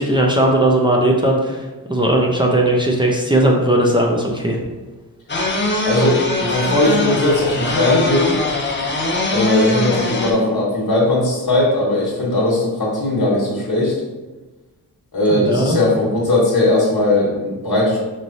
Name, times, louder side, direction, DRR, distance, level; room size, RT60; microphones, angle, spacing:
voice 1, 0.0-1.6 1.9-4.6 15.3-15.8, right 1 dB, 15° right, -1 dB, 0.6 m, -17 dB
sound 1, 5.3-10.3, left 2 dB, 30° left, 0.7 m, -21 dB
voice 2, 5.8-8.4 9.3-13.9 15.1-18.0, left 2 dB, 65° left, -7 dB, 1.3 m, -18 dB
5.3 x 3.1 x 2.7 m, 1.2 s
wide cardioid pair, 100°, 37 cm